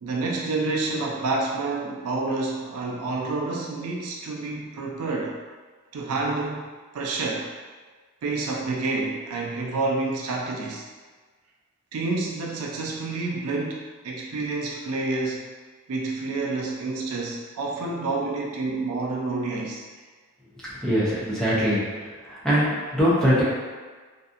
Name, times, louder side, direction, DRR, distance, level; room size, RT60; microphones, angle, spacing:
voice 1, 0.0-5.4 5.9-6.7 6.9-7.5 8.2-10.8 11.9-15.5 15.9-19.9, right 3 dB, 75° right, -1 dB, 0.4 m, -28 dB
voice 2, 20.8-21.8 22.3-23.4, equal, 5° left, -10 dB, 0.5 m, -22 dB
2.6 x 2.4 x 2.4 m, 1.4 s
head